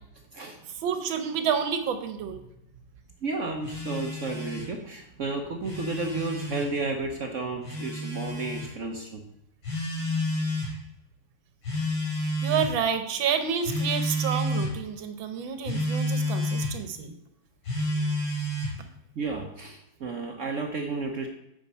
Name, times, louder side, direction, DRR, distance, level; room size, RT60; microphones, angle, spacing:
voice 1, 0.8-2.4 12.4-17.1, right 7 dB, 75° right, 9 dB, 1.6 m, -29 dB
voice 2, 3.2-9.2 19.2-21.3, right 3 dB, 60° right, 3 dB, 0.8 m, -32 dB
Telephone, 3.6-4.7 5.5-6.7 7.6-8.7 9.6-10.7 11.6-12.8 13.6-14.7 15.6-16.7 17.6-18.8, left 1 dB, 65° left, 5.0 m, -30 dB
9.5 x 5.1 x 5.5 m, 0.84 s
omnidirectional pair, 2.2 m